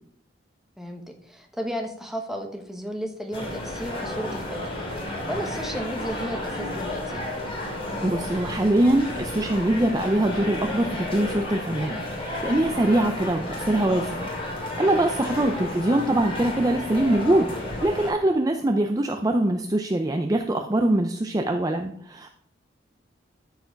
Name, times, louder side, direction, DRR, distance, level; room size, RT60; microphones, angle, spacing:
voice 1, 0.8-4.8 5.1-7.2 15.4-15.7, equal, ahead, 3 dB, 1.2 m, -34 dB
sound 1, 3.3-18.1, left 1 dB, 30° left, 2.9 m, -32 dB
voice 2, 8.0-17.5 17.8-22.3, right 1 dB, 20° right, 4 dB, 0.5 m, -23 dB
13.5 x 4.8 x 5.2 m, 0.69 s
head